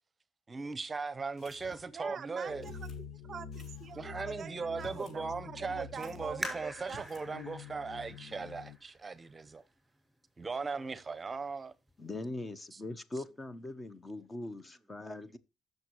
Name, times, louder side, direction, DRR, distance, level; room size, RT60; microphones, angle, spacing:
voice 1, 0.5-2.6 4.0-9.6 10.4-11.7 12.7-12.8, right 4 dB, 25° right, 0.9 m, -38 dB
sound 1, 1.4-2.0 2.6-3.0 3.5-4.0 4.7-5.2 5.5-5.6 5.9-6.5 6.8-7.3, left 2 dB, 55° left, 4.2 m, -55 dB
voice 2, 1.9-7.1, right 7 dB, 45° right, 0.5 m, -44 dB
sound 2, 2.5-8.8, left 6 dB, 80° left, 1.2 m, -47 dB
sound 3, 6.4-9.8 10.4-10.5 11.1-11.5 11.9-12.0, equal, ahead, 6.3 m, -45 dB
voice 3, 12.0-15.4, left 2 dB, 20° left, 1.0 m, -41 dB
16.0 x 6.7 x 3.1 m
cardioid pair, 130°, 0 cm